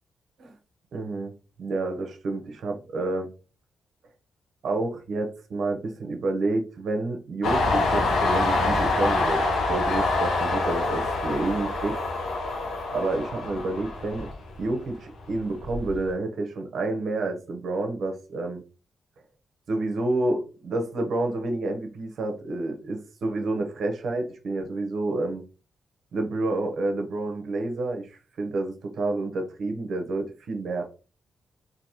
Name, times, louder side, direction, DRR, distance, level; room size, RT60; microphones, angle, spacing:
voice 1, 0.9-1.3 1.6-3.3 4.6-12.0 12.9-14.3 14.6-18.6 19.7-25.4 26.1-30.8, right 2 dB, 75° right, 0.9 m, -29 dB
Train, 7.4-14.8 15.2-16.0, left 2 dB, 85° left, 0.9 m, -26 dB
4.1 x 2.8 x 2.9 m
supercardioid pair, 50°, 0 cm